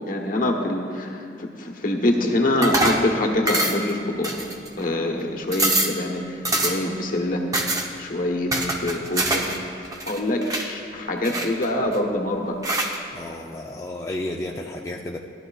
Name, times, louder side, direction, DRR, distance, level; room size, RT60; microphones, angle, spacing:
voice 1, 0.1-4.4 4.8-7.4 7.7-8.5 8.8-12.6, left 1 dB, 50° left, 2 dB, 1.2 m, -25 dB
sound 1, 2.6-3.1 3.5-3.9 4.2-4.8 5.2-5.3 5.5-6.0 6.4-6.9 7.5-7.9 8.5-9.6 9.8-10.7 11.2-12.0 12.6-13.0, right 2 dB, 20° right, 0.9 m, -24 dB
voice 2, 13.1-15.2, left 1 dB, 20° left, -1 dB, 0.5 m, -32 dB
17.0 x 12.0 x 2.4 m, 2.4 s
head